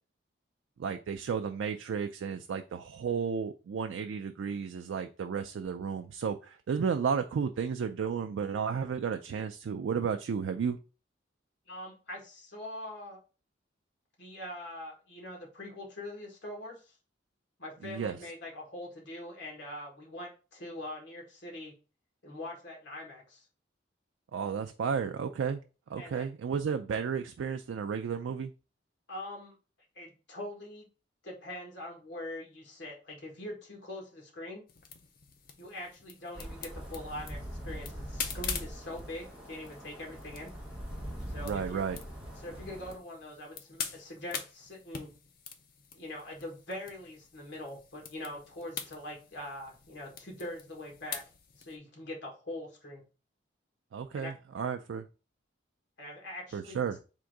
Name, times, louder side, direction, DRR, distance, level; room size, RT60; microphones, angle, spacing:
voice 1, 0.8-10.8 17.8-18.2 24.3-25.6 25.9-28.5 41.4-42.0 53.9-55.1 56.5-57.0, right 6 dB, 80° right, 0.3 m, -33 dB
voice 2, 11.7-13.2 14.2-17.0 17.6-21.7 22.2-23.4 26.0-26.3 29.1-29.6 29.9-30.9 31.2-34.6 35.6-40.5 41.3-41.8 42.4-45.1 45.9-51.2 51.6-53.0 54.1-54.3 56.0-56.8, left 1 dB, 65° left, 1.6 m, -43 dB
sound 1, 34.7-51.8, left 7 dB, 45° left, 0.5 m, -45 dB
sound 2, 36.3-43.0, equal, 5° right, 1.0 m, -42 dB
3.7 x 2.6 x 4.7 m
head